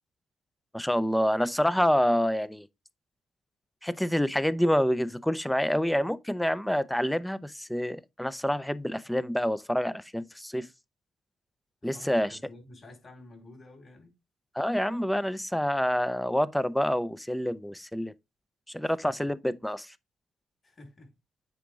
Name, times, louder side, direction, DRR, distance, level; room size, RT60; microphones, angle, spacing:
voice 1, 0.7-2.7 3.8-10.7 11.8-12.4 14.5-18.1 18.7-19.9, equal, 5° left, 0.6 m, -27 dB
voice 2, 11.8-14.1 18.8-19.1 20.6-21.1, left 1 dB, 40° left, 4.7 m, -50 dB
8.3 x 5.0 x 3.6 m
cardioid pair, 90°, 0 cm